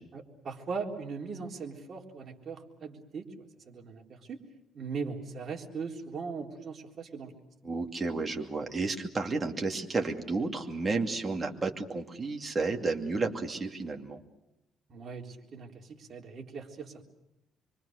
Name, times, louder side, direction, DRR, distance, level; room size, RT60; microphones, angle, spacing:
voice 1, 0.1-3.3 3.7-4.4 4.7-7.3 14.9-17.0, right 5 dB, 40° right, 1 dB, 3.8 m, -39 dB
voice 2, 7.6-14.2, right 3 dB, 20° right, 3 dB, 2.6 m, -32 dB
26.0 x 24.0 x 6.6 m, 0.87 s
cardioid pair, 130°, 0 cm